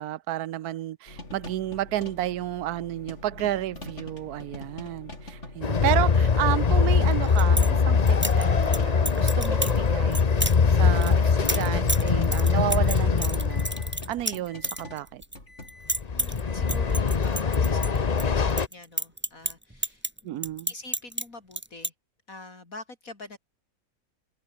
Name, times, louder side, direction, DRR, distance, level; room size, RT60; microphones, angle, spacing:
voice 1, 0.0-13.7 14.1-15.2 20.2-20.7, right 13 dB, 90° right, 1.2 m, -31 dB
sound 1, 1.1-18.2, left 2 dB, 50° left, 6.6 m, -44 dB
Train, 5.6-14.1 15.9-18.7, left 5 dB, 35° left, 0.9 m, -22 dB
sound 2, 7.1-7.7 8.1-8.8 9.0-9.8 10.1-10.6 11.0-15.4 15.6-16.4 16.7-18.2 18.5-21.2 21.5-21.9, right 1 dB, 5° right, 2.0 m, -30 dB
voice 2, 16.1-20.1 20.7-21.9 22.3-23.4, left 2 dB, 65° left, 4.5 m, -44 dB
omnidirectional pair, 1.6 m